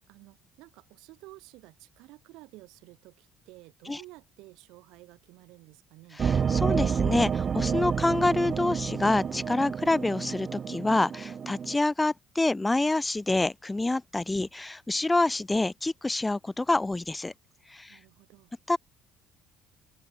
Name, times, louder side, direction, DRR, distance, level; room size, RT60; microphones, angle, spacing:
voice 1, 0.0-6.2 17.9-18.5, right 21 dB, 80° right, 4.5 m, -52 dB
voice 2, 6.2-17.3 17.7-18.0 18.7-18.8, left 2 dB, 10° left, 0.6 m, -27 dB
sound 1, 6.2-11.8, right 7 dB, 30° right, 0.5 m, -29 dB
open air
cardioid pair, 145°, 0 cm